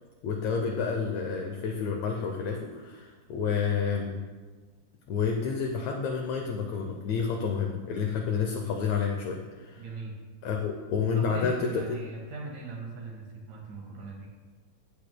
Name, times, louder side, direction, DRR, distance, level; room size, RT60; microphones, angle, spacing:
voice 1, 0.2-4.2 5.1-9.8 10.4-12.0, left 6 dB, 75° left, 1 dB, 1.7 m, -29 dB
voice 2, 9.8-10.2 11.2-14.3, right 2 dB, 70° right, 0 dB, 3.0 m, -40 dB
15.0 x 8.7 x 2.2 m, 1.4 s
omnidirectional pair, 3.9 m